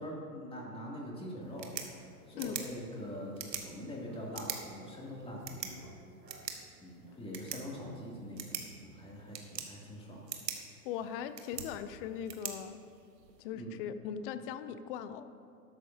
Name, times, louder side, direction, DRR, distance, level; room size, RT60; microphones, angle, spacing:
voice 1, 0.0-6.0 6.8-10.7 13.5-13.8, equal, 10° left, -3 dB, 2.6 m, -44 dB
sound 1, 1.4-13.4, right 6 dB, 85° right, 1.4 m, -45 dB
voice 2, 2.3-2.7 10.8-12.8 13.4-15.3, left 8 dB, 35° left, 12 dB, 0.5 m, -39 dB
12.5 x 12.0 x 2.8 m, 2.4 s
hypercardioid pair, 105°, 48 cm